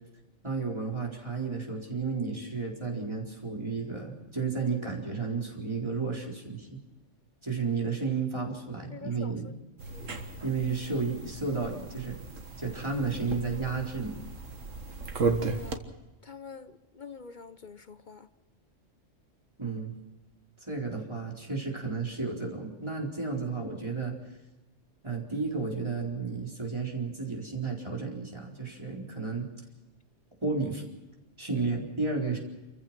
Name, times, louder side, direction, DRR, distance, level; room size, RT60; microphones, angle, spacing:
voice 1, 0.4-6.8 7.4-9.4 10.4-12.2 12.6-14.2 19.6-19.9 20.6-24.2 25.0-29.5 30.4-30.8 31.4-32.4, right 4 dB, 20° right, 4.4 m, -32 dB
voice 2, 8.9-9.5 9.9-10.1 15.4-15.8 16.2-18.3, left 5 dB, 45° left, 0.9 m, -46 dB
sound 1, 9.8-15.8, right 4 dB, 90° right, 1.9 m, -35 dB
28.0 x 15.0 x 6.1 m
omnidirectional pair, 1.3 m